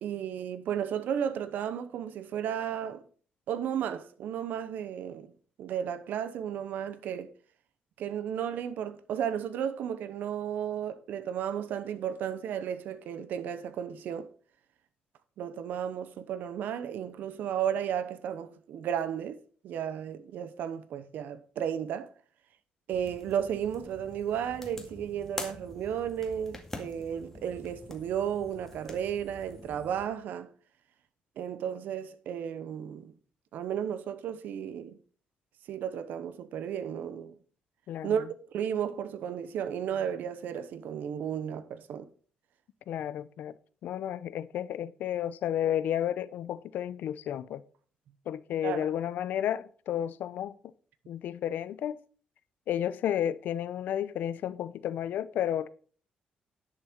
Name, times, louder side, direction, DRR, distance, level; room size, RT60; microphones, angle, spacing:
voice 1, 0.0-3.0 3.5-5.3 5.6-7.3 8.0-14.3 15.4-22.1 22.9-30.5 31.4-33.1 33.5-35.0 35.7-37.4 38.0-42.1 48.6-48.9, right 9 dB, 80° right, 0.8 m, -34 dB
sound 1, 22.9-30.1, left 2 dB, 10° left, 2.1 m, -45 dB
voice 2, 37.9-38.3 42.9-43.5 43.8-47.6 48.3-50.5 51.1-52.0 52.7-55.7, left 10 dB, 80° left, 0.7 m, -32 dB
10.5 x 6.8 x 5.1 m
cardioid pair, 100°, 3 cm